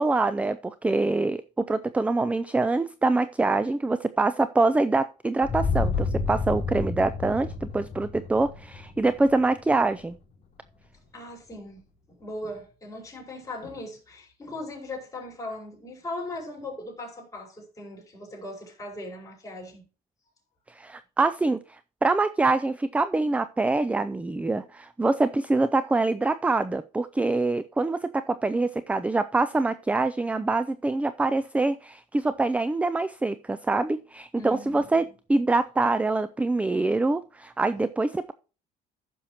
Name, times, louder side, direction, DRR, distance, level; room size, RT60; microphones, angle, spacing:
voice 1, 0.0-10.1 20.7-38.3, right 3 dB, 10° right, 0.3 m, -25 dB
sound 1, 5.4-9.5, left 4 dB, 40° left, 3.6 m, -30 dB
voice 2, 11.1-19.9 34.3-35.1, left 2 dB, 20° left, 5.0 m, -39 dB
15.0 x 6.2 x 2.9 m
cardioid pair, 110°, 17 cm